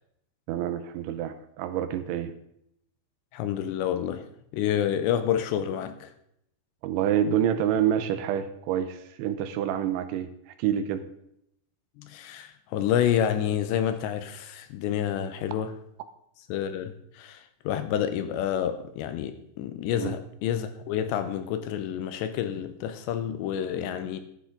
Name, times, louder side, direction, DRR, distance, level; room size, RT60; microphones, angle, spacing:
voice 1, 0.5-2.3 6.8-10.3 10.6-11.0 20.0-20.1, right 10 dB, 85° right, 3.1 m, -27 dB
voice 2, 3.3-4.3 4.5-6.1 12.0-15.7 16.5-17.4 17.7-24.2, left 10 dB, 80° left, 2.7 m, -28 dB
13.5 x 11.5 x 3.9 m
omnidirectional pair, 5.6 m